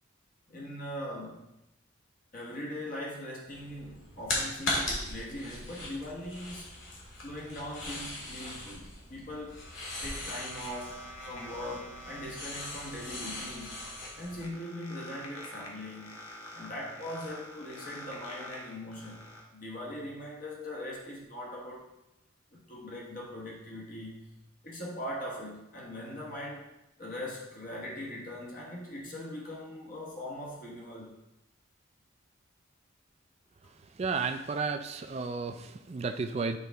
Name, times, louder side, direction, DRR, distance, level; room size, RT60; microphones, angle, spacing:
voice 1, 0.5-1.5 2.3-6.7 7.2-9.6 10.0-13.9 14.2-16.2 16.5-21.9 22.5-24.4 24.6-26.7 27.0-31.2, left 1 dB, 40° left, -3 dB, 1.0 m, -41 dB
sound 1, 3.5-14.4, left 1 dB, 70° left, 1.8 m, -39 dB
sound 2, 8.9-19.4, left 1 dB, 85° left, 1.3 m, -47 dB
voice 2, 34.0-36.6, right 4 dB, 30° right, 7 dB, 0.3 m, -33 dB
8.3 x 4.0 x 3.4 m, 0.91 s
head